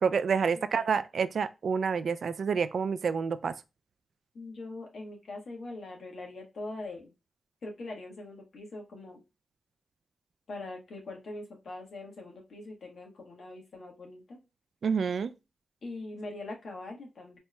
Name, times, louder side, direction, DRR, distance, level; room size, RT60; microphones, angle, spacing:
voice 1, 0.0-3.5 14.8-15.3, right 6 dB, 75° right, 0.3 m, -28 dB
voice 2, 0.5-0.9 4.3-7.1 7.6-9.2 10.5-14.4 15.8-17.4, left 2 dB, 80° left, 1.4 m, -42 dB
4.2 x 3.2 x 2.2 m
cardioid pair, 60°, 0 cm